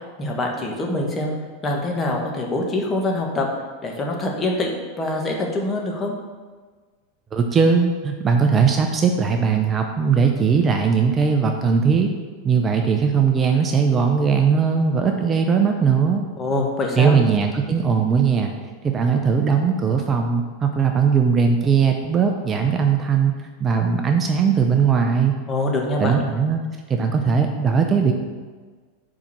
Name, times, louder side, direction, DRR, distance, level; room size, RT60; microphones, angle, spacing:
voice 1, 0.0-1.3 1.6-3.5 3.8-6.1 16.4-17.2 25.5-26.2, left 2 dB, 25° left, 0 dB, 1.4 m, -24 dB
voice 2, 7.3-12.1 12.4-16.2 17.0-18.5 18.8-23.3 23.6-25.3 26.0-26.6 26.9-28.1, right 6 dB, 25° right, 3 dB, 0.7 m, -19 dB
5.2 x 4.9 x 6.1 m, 1.4 s
hypercardioid pair, 90°, 0 cm